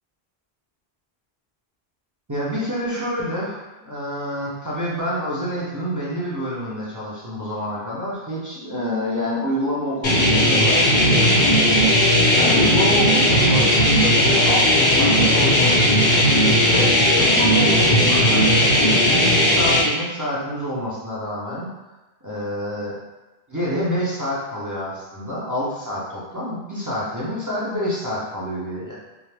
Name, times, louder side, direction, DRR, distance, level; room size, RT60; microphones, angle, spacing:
voice 1, 2.3-11.8 12.4-15.8 16.6-21.7 22.2-23.0 23.5-29.0, equal, 25° right, -7 dB, 0.5 m, -27 dB
sound 1, 10.0-19.8, equal, 55° left, 0.8 m, -16 dB
2.5 x 2.4 x 3.3 m, 1.1 s
omnidirectional pair, 1.0 m